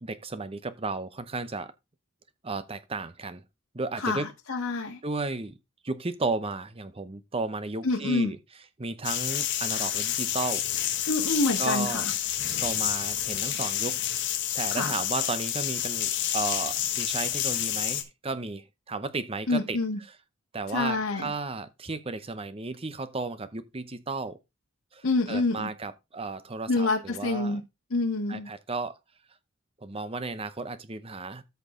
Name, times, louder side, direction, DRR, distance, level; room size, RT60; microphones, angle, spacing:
voice 1, 0.0-1.7 2.4-3.4 3.7-4.3 5.0-5.6 5.8-8.4 8.8-10.6 11.6-12.1 12.6-14.0 14.5-19.8 20.5-24.4 24.9-27.6 28.3-29.0 29.8-31.4, right 3 dB, 25° right, 0.7 m, -34 dB
voice 2, 4.0-5.0 7.8-8.3 11.1-12.1 14.7-14.9 19.5-20.0 20.7-21.3 25.0-25.7 26.7-27.6 27.9-28.5, left 3 dB, 80° left, 1.6 m, -27 dB
sound 1, 9.0-18.0, left 11 dB, 60° left, 1.4 m, -29 dB
13.5 x 4.7 x 3.7 m
head